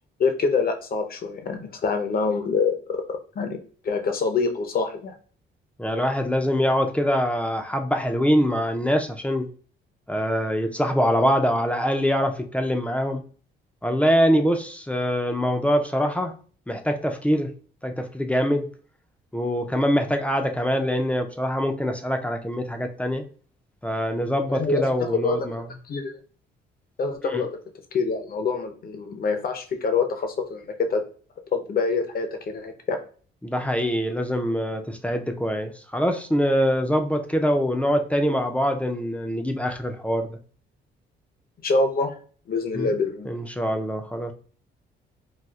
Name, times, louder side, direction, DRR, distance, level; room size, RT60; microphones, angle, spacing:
voice 1, 0.2-3.6 3.8-5.1 24.5-26.2 27.0-27.5 27.9-31.0 31.5-33.0 41.6-42.2 42.5-43.3, left 4 dB, 50° left, 5 dB, 0.7 m, -25 dB
voice 2, 5.8-9.5 10.1-13.2 13.8-16.3 16.7-17.5 17.8-18.7 19.3-23.2 23.8-25.6 27.2-27.4 33.4-40.4 42.7-42.9 43.3-44.3, equal, 5° left, 5 dB, 0.5 m, -24 dB
4.2 x 2.4 x 2.3 m, 0.43 s
cardioid pair, 90°, 20 cm